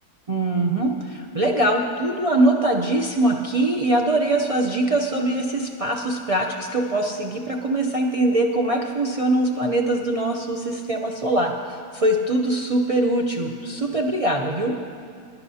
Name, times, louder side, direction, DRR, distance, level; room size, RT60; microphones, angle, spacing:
voice 1, 0.3-14.7, right 1 dB, 55° right, 0 dB, 0.3 m, -22 dB
21.5 x 11.0 x 2.8 m, 2.2 s
omnidirectional pair, 1.6 m